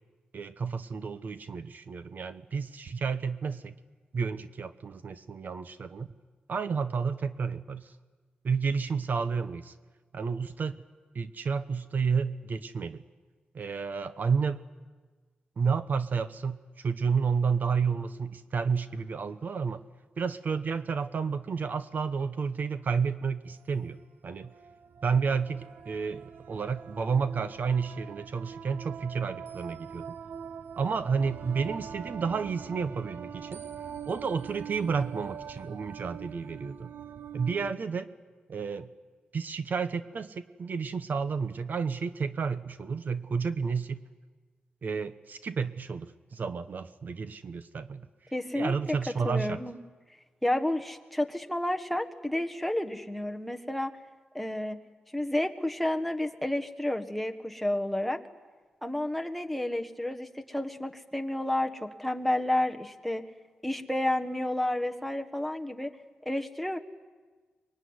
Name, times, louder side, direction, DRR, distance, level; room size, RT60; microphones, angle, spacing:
voice 1, 0.3-3.8 4.1-6.1 6.5-7.9 8.4-9.7 10.1-10.7 11.1-13.0 13.5-14.6 15.6-19.8 20.2-24.0 24.2-24.5 25.0-30.1 30.8-33.6 34.1-36.9 37.3-38.1 38.5-38.9 39.3-44.0 44.8-48.1 48.5-49.6, right 5 dB, 60° right, 11 dB, 1.1 m, -31 dB
sound 1, 23.6-23.7 24.3-37.7, right 7 dB, 80° right, 0.9 m, -43 dB
voice 2, 48.3-48.7 49.2-49.8 50.4-53.9 54.3-54.8 55.1-58.2 58.8-63.2 63.6-65.9 66.2-66.8, left 1 dB, ahead, 4 dB, 1.5 m, -30 dB
25.0 x 22.5 x 9.7 m, 1.4 s
wide cardioid pair, 110°, 3 cm